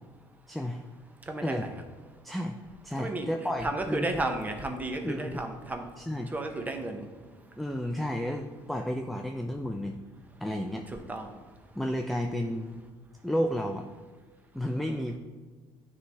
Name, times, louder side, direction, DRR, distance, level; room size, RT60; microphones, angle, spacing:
voice 1, 0.5-0.8 1.4-1.6 2.2-2.6 2.8-4.1 5.0-5.4 6.0-6.3 7.6-10.0 10.4-10.8 11.8-12.8 13.2-13.9 14.5-15.2, equal, ahead, 3 dB, 0.3 m, -32 dB
voice 2, 1.3-1.7 3.0-3.3 3.6-5.9 6.3-7.4 10.9-11.4, right 2 dB, 20° right, 5 dB, 0.8 m, -33 dB
9.3 x 3.3 x 3.3 m, 1.4 s
cardioid pair, 105°, 9 cm